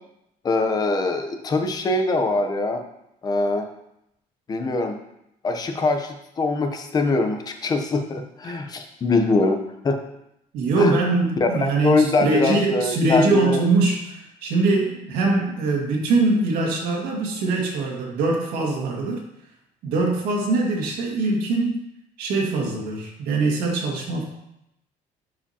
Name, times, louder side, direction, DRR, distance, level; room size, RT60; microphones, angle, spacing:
voice 1, 0.4-2.8 3.2-3.7 4.5-5.0 5.4-10.0 10.8-10.9 11.4-13.6, left 3 dB, 25° left, 5 dB, 0.7 m, -23 dB
voice 2, 10.5-19.2 19.8-21.8 22.2-24.2, right 3 dB, 85° right, -1 dB, 1.9 m, -22 dB
11.5 x 5.0 x 2.8 m, 0.81 s
cardioid pair, 160°, 15 cm